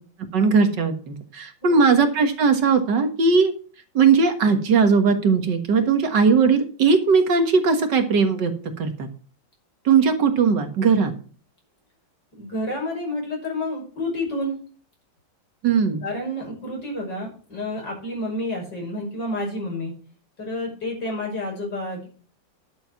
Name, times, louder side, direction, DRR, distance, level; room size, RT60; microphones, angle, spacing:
voice 1, 0.3-3.5 3.9-8.5 8.8-9.1 9.9-11.1 15.6-16.0, right 5 dB, 65° right, 7 dB, 2.1 m, -19 dB
voice 2, 1.6-1.9 12.4-14.6 16.0-19.9 20.4-22.1, left 1 dB, 65° left, -1 dB, 6.6 m, -29 dB
11.0 x 7.1 x 5.8 m, 0.40 s
omnidirectional pair, 2.0 m